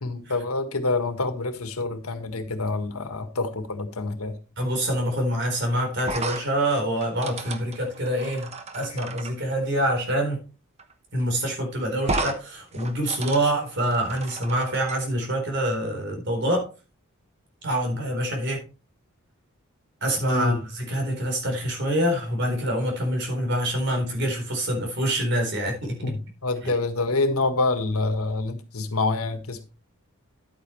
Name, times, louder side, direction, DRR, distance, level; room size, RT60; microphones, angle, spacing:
voice 1, 0.0-4.4 20.3-20.6 26.0-29.6, left 3 dB, 85° left, 1.6 m, -27 dB
voice 2, 4.6-10.4 11.1-16.7 17.6-18.7 20.0-26.0 26.6-26.7, right 1 dB, 55° right, 4.1 m, -26 dB
sound 1, 6.0-9.3 10.8-10.9 11.2-11.3 12.0-12.4 12.7-15.0, right 3 dB, 30° right, 1.1 m, -33 dB
11.0 x 8.9 x 3.2 m
head